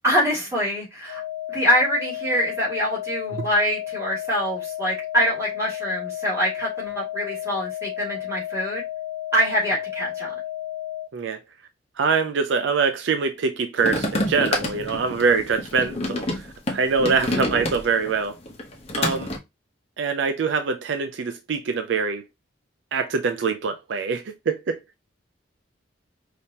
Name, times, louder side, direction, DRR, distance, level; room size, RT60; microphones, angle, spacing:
voice 1, 0.0-1.2 1.5-8.8 9.3-10.3, equal, 15° right, 2.5 m, -24 dB
sound 1, 1.1-11.1, left 13 dB, 80° left, 0.4 m, -32 dB
voice 2, 12.0-16.4 16.7-18.3 18.9-19.3 20.0-22.2 22.9-24.8, right 5 dB, 65° right, 0.4 m, -24 dB
sound 2, 13.8-18.1 18.5-19.4, left 1 dB, 30° left, 1.0 m, -27 dB
5.0 x 2.8 x 2.8 m
head